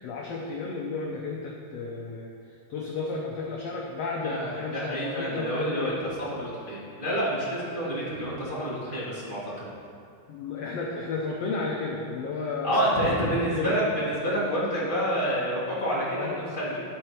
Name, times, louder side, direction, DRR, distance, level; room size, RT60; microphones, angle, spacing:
voice 1, 0.0-2.3 2.7-5.9 10.3-13.7 16.2-16.4, left 3 dB, 80° left, -2 dB, 1.4 m, -33 dB
voice 2, 4.2-9.7 12.6-16.8, equal, 25° left, -8 dB, 1.2 m, -28 dB
12.0 x 4.5 x 4.4 m, 2.4 s
omnidirectional pair, 3.7 m